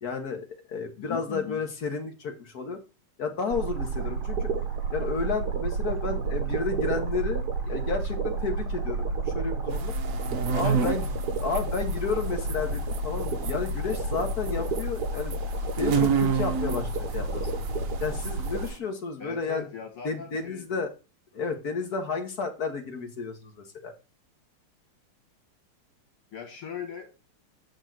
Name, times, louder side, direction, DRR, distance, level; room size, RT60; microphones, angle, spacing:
voice 1, 0.0-2.8 3.2-4.5 4.9-9.9 10.5-11.1 11.4-15.4 15.8-17.5 18.0-19.7 20.0-20.9 21.3-23.9, left 4 dB, 50° left, 5 dB, 1.5 m, -32 dB
voice 2, 1.1-1.6 10.6-10.9 19.2-20.7 26.3-27.3, left 8 dB, 75° left, 1 dB, 2.7 m, -39 dB
sound 1, 3.5-18.7, right 2 dB, 50° right, 1.8 m, -30 dB
sound 2, 9.7-18.8, right 7 dB, 70° right, 0.7 m, -31 dB
8.0 x 4.4 x 6.1 m, 0.31 s
omnidirectional pair, 2.4 m